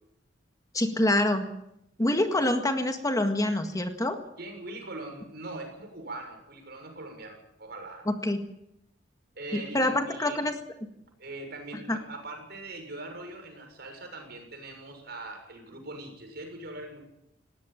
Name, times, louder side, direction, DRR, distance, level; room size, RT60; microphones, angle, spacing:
voice 1, 0.7-1.5 2.0-4.2 8.1-8.4 9.5-10.5 11.9-12.0, left 1 dB, 20° left, 6 dB, 1.8 m, -26 dB
voice 2, 2.1-2.6 4.4-8.1 9.3-10.4 11.2-17.1, right 2 dB, 60° right, 4 dB, 6.7 m, -41 dB
20.0 x 17.5 x 9.0 m, 0.82 s
head